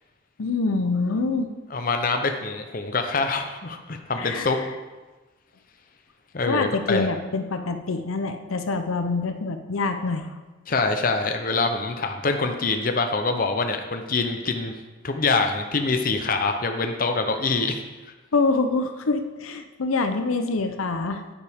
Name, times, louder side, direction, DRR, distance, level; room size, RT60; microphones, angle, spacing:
voice 1, 0.4-1.5 4.2-4.6 6.5-10.3 18.3-21.2, left 3 dB, 85° left, 7 dB, 0.7 m, -25 dB
voice 2, 1.7-4.6 6.3-7.1 10.7-14.7 15.0-17.8, left 3 dB, 45° left, 5 dB, 0.7 m, -25 dB
9.7 x 9.5 x 3.6 m, 1.2 s
head